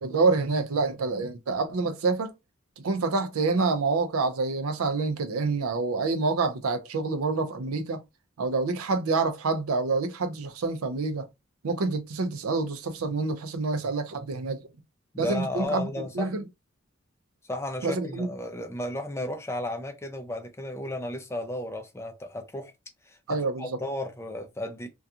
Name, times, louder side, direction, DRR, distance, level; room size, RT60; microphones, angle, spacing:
voice 1, 0.0-2.3 2.8-8.0 8.4-11.3 11.6-14.6 15.2-15.9 16.1-16.4 17.8-18.3 23.3-23.8, right 3 dB, 85° right, 0.5 m, -27 dB
voice 2, 15.1-16.3 17.5-22.7 23.1-24.9, left 1 dB, 10° left, 0.3 m, -34 dB
2.7 x 2.3 x 2.3 m
head